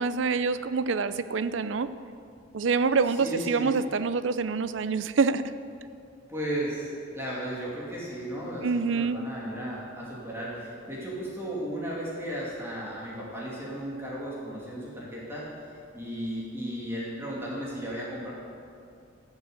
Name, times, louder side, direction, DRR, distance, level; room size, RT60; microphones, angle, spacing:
voice 1, 0.0-1.9 2.5-5.4 8.6-9.2, right 5 dB, 70° right, 13 dB, 0.5 m, -26 dB
voice 2, 3.1-3.7 6.3-15.5 15.9-18.3, right 1 dB, 10° right, -6 dB, 2.5 m, -35 dB
13.0 x 7.1 x 7.9 m, 2.4 s
head